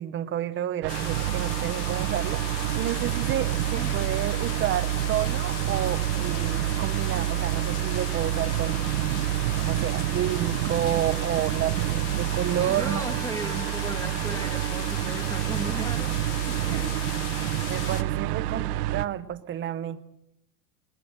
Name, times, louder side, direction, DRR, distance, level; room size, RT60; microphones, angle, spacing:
voice 1, 0.0-8.9 9.6-13.1 17.7-20.0, right 11 dB, 25° right, 0.8 m, -30 dB
sound 1, 0.8-19.1, right 14 dB, 70° right, 1.0 m, -28 dB
sound 2, 0.9-18.0, left 9 dB, 65° left, 1.8 m, -38 dB
voice 2, 12.6-17.1, right 1 dB, 5° left, 2.6 m, -37 dB
20.0 x 19.5 x 6.5 m
supercardioid pair, 135°, 49 cm